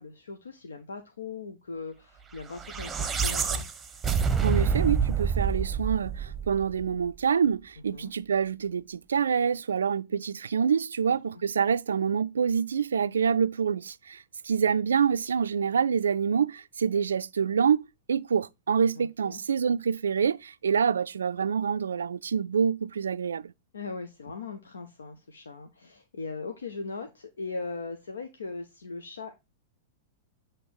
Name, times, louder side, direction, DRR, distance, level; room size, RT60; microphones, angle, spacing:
voice 1, 0.0-3.6 7.9-8.1 11.0-11.1 19.0-19.4 23.7-29.3, left 4 dB, 80° left, 0.8 m, -39 dB
sound 1, 2.5-6.9, right 6 dB, 15° right, 0.9 m, -27 dB
voice 2, 4.4-23.5, right 7 dB, 80° right, 0.3 m, -26 dB
8.0 x 3.1 x 4.6 m
hypercardioid pair, 100°, 0 cm